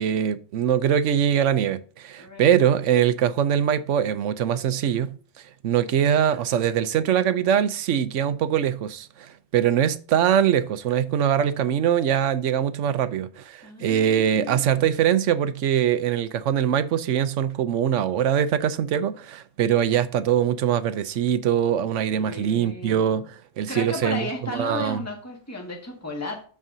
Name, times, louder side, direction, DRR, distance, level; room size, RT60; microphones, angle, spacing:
voice 1, 0.0-5.1 5.6-25.0, right 9 dB, 80° right, 1.0 m, -22 dB
voice 2, 2.2-2.5 13.6-15.1 22.1-23.2 23.7-26.5, left 2 dB, 10° left, 1.8 m, -34 dB
13.0 x 4.7 x 2.7 m
omnidirectional pair, 1.3 m